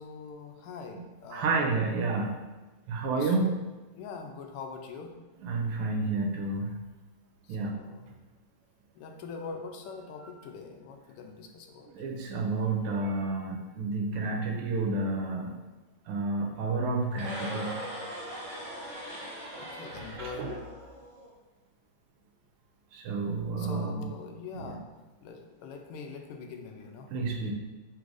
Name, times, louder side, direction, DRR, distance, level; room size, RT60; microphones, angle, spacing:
voice 1, 0.0-1.6 3.1-3.6 4.0-5.2 7.4-8.0 8.9-11.9 19.6-20.6 23.5-24.8 25.2-27.1, left 5 dB, 90° left, 4 dB, 1.5 m, -43 dB
voice 2, 1.3-2.3 2.9-3.5 5.4-6.7 7.5-7.7 11.9-15.5 16.1-17.7 20.2-20.5 22.9-24.1 24.6-24.8 27.1-27.5, right 3 dB, 90° right, 1 dB, 1.6 m, -30 dB
sound 1, 17.1-21.3, equal, 35° right, 0.5 m, -40 dB
4.7 x 3.9 x 2.5 m, 1.2 s
omnidirectional pair, 2.4 m